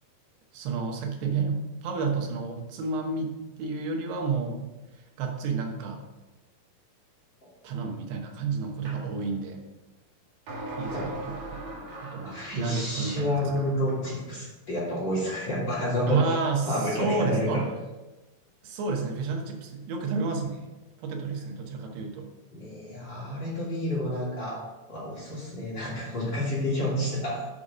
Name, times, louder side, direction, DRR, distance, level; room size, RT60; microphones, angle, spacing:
voice 1, 0.5-3.3 3.6-4.7 5.2-6.1 7.6-9.6 10.8-13.7 16.1-17.6 18.6-20.6 21.0-22.3, right 4 dB, 90° right, 2 dB, 3.2 m, -30 dB
sound 1, 8.8-9.0 10.5-14.2, right 2 dB, 55° right, 2.7 m, -40 dB
voice 2, 12.2-16.3 16.7-17.6 22.5-27.5, left 1 dB, 30° left, -7 dB, 2.8 m, -30 dB
7.7 x 5.6 x 5.0 m, 1.1 s
omnidirectional pair, 4.5 m